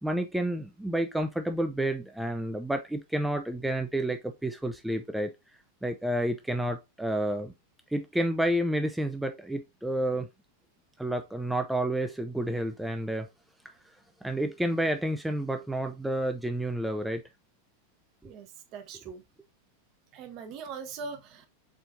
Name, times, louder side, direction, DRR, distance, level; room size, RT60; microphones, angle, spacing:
voice 1, 0.0-5.3 5.8-7.5 7.9-10.3 11.0-13.3 13.6-13.7 14.2-17.2 18.2-18.3, right 1 dB, 5° right, 0.4 m, -30 dB
voice 2, 18.2-19.2 20.1-21.5, right 5 dB, 40° right, 0.9 m, -41 dB
4.3 x 4.3 x 2.7 m
figure-of-eight pair, 90°, 0 cm